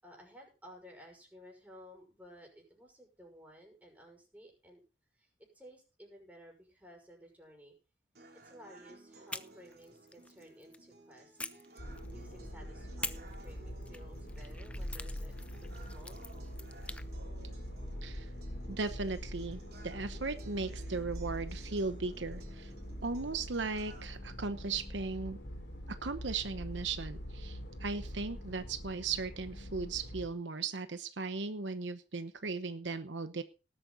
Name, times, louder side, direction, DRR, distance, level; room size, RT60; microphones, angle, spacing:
voice 1, 0.0-4.8 5.1-7.7 8.4-11.4 12.1-16.2, equal, 10° right, 0 dB, 5.9 m, -55 dB
sound 1, 8.2-24.2, right 2 dB, 55° right, 3.2 m, -57 dB
sound 2, 9.3-10.8 11.4-12.4 13.0-17.1, left 2 dB, 5° left, 0.5 m, -46 dB
sound 3, 11.8-30.3, equal, 65° left, 3.9 m, -44 dB
voice 2, 18.7-22.7 23.0-25.4 26.0-33.4, right 4 dB, 80° right, 10 dB, 1.0 m, -37 dB
19.0 x 8.7 x 4.1 m, 0.33 s
head